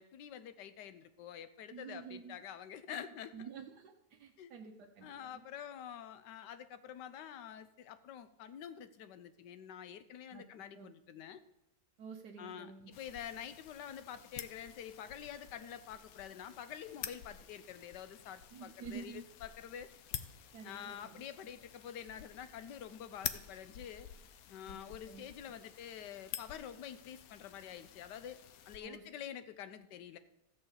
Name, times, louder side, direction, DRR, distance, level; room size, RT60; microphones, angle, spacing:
voice 1, 0.0-3.5 4.4-4.5 5.0-11.4 12.4-19.9 20.6-24.1 24.5-30.2, left 9 dB, 90° left, 12 dB, 1.4 m, -47 dB
voice 2, 1.7-2.4 3.3-5.4 10.3-10.4 10.7-10.9 12.0-12.9 18.5-19.2 20.5-21.2 24.7-24.8 25.1-25.2 28.8-29.0, right 6 dB, 75° right, 2 dB, 1.4 m, -49 dB
sound 1, 12.9-28.8, left 10 dB, 65° left, 1.0 m, -49 dB
14.0 x 4.8 x 8.0 m, 0.88 s
omnidirectional pair, 1.8 m